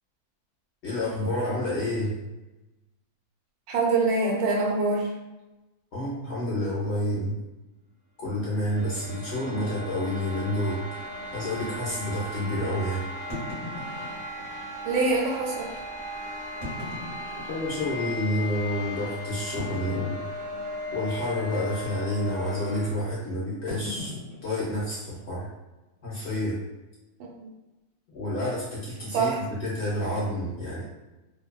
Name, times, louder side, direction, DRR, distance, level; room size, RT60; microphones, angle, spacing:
voice 1, 0.8-2.2 5.9-7.4 8.2-10.9 11.3-13.0 17.5-20.2 20.9-24.1 24.4-25.5 26.0-26.6 28.1-30.8, left 1 dB, 60° left, -7 dB, 0.8 m, -29 dB
voice 2, 3.7-5.1 14.8-15.8 23.8-23.9 27.4-27.5 29.1-29.4, right 3 dB, 80° right, -1 dB, 1.1 m, -25 dB
sound 1, 8.3-22.9, left 1 dB, 20° right, 0.5 m, -37 dB
sound 2, 8.6-8.7 9.5-9.6 9.9-10.0 10.6-10.7 13.3-14.5 15.3-15.4 16.5-17.9 18.4-18.5 19.6-20.7 20.9-21.3 21.5-21.9 23.7-25.3, left 2 dB, 30° left, 0.9 m, -40 dB
2.6 x 2.2 x 2.3 m, 1.1 s
omnidirectional pair, 1.6 m